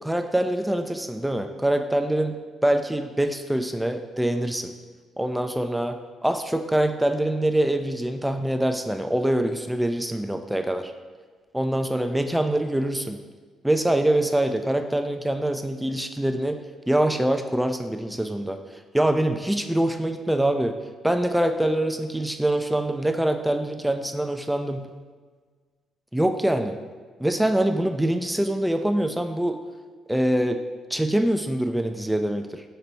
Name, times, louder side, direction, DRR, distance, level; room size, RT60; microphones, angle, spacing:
voice 1, 0.0-4.7 5.2-5.9 6.2-10.9 11.5-13.2 13.6-16.6 16.9-18.6 18.9-20.7 21.0-24.9 26.1-26.8 27.2-29.6 30.1-30.6 30.9-32.6, right 1 dB, 5° right, 6 dB, 0.3 m, -24 dB
4.3 x 2.9 x 4.3 m, 1.5 s
figure-of-eight pair, 40°, 0 cm